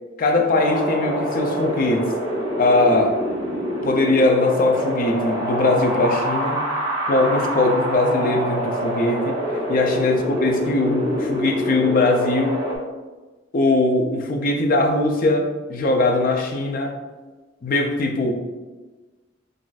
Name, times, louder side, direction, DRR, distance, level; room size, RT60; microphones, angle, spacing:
voice 1, 0.2-2.1 2.6-3.2 3.8-6.6 7.1-9.4 9.7-12.6 13.5-16.9 17.6-18.3, left 2 dB, 45° left, 3 dB, 0.4 m, -20 dB
Wind, 0.5-12.8, equal, 20° right, 0.6 m, -26 dB
3.9 x 2.5 x 2.3 m, 1.3 s
head